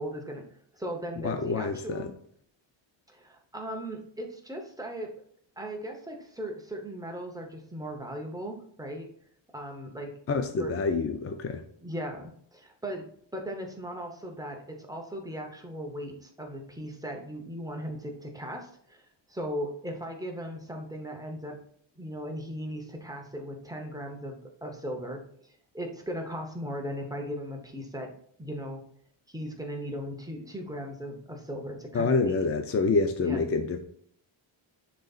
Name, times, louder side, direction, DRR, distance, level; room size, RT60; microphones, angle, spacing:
voice 1, 0.0-2.1 3.1-5.1 5.6-9.1 9.5-10.2 10.6-10.8 11.8-21.6 21.9-28.1 28.4-28.8 29.3-32.3 33.2-33.4, equal, 5° right, 1 dB, 0.8 m, -38 dB
voice 2, 1.2-2.1 10.3-11.6 31.9-33.8, left 4 dB, 30° left, 6 dB, 0.4 m, -27 dB
10.5 x 4.0 x 2.4 m, 0.63 s
wide cardioid pair, 170°, 49 cm